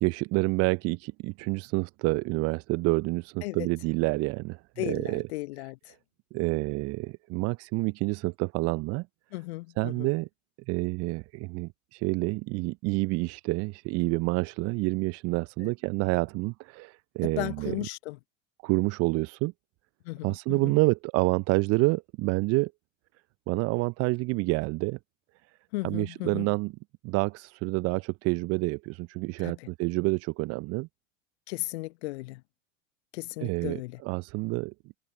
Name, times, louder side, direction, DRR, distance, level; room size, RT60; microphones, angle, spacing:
voice 1, 0.0-5.2 6.3-9.1 9.8-10.3 10.7-17.7 18.6-19.5 20.2-22.7 23.5-25.0 25.8-26.7 27.0-30.9 33.4-35.0, right 25 dB, 40° right, 0.8 m, -28 dB
voice 2, 4.8-5.9 9.3-10.1 15.6-15.7 17.2-18.2 20.0-20.8 25.7-26.5 29.4-29.7 31.5-32.4 33.1-34.0, left 21 dB, 55° left, 1.2 m, -36 dB
figure-of-eight pair, 80°, 39 cm